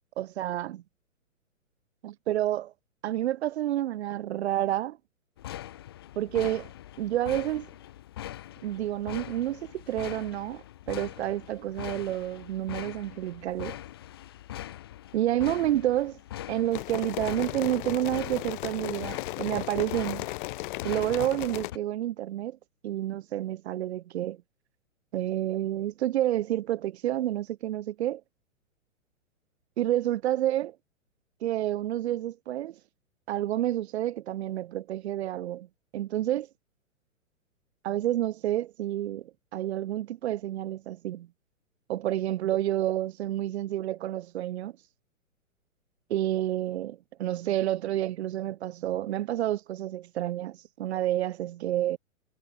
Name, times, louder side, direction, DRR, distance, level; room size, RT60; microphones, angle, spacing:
voice 1, 0.2-0.8 2.0-2.7 3.0-5.0 6.2-6.7 7.0-7.7 8.6-13.8 15.1-16.2 16.5-20.2 20.8-22.6 22.8-24.4 25.1-28.2 29.8-30.7 31.4-32.8 33.3-35.7 35.9-36.5 37.8-41.3 41.9-44.7 46.1-52.0, right 13 dB, 55° right, 1.0 m, -29 dB
sound 1, 5.4-21.8, left 13 dB, 20° left, 0.3 m, -42 dB
sound 2, 16.7-21.7, left 21 dB, 40° left, 1.3 m, -35 dB
hypercardioid pair, 125°, 40 cm